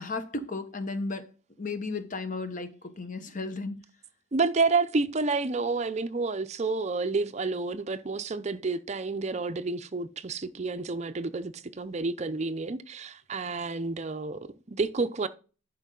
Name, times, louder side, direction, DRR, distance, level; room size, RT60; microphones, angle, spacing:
voice 1, 0.0-1.3 1.6-3.8, left 3 dB, 40° left, 1.0 m, -34 dB
voice 2, 4.3-15.3, right 3 dB, 35° right, 0.5 m, -29 dB
11.5 x 4.5 x 3.8 m
head